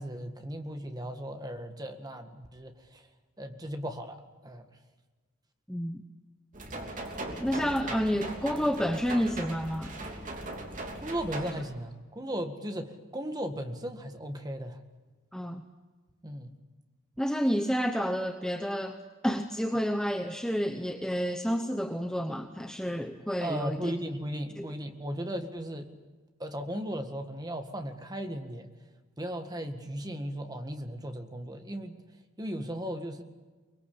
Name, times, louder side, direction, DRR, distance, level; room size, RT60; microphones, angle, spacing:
voice 1, 0.0-3.0 3.4-4.2 4.4-4.7 11.0-14.8 16.2-16.5 23.4-25.9 26.4-28.7 29.2-32.0 32.4-33.2, equal, 20° right, 6 dB, 1.8 m, -36 dB
voice 2, 5.7-6.0 7.4-10.0 15.3-15.6 17.2-19.0 19.2-23.9 24.6-24.7, equal, 5° left, 6 dB, 0.9 m, -30 dB
sound 1, 6.5-11.6, right 2 dB, 35° right, 3.3 m, -38 dB
24.0 x 21.5 x 8.7 m, 1.3 s
head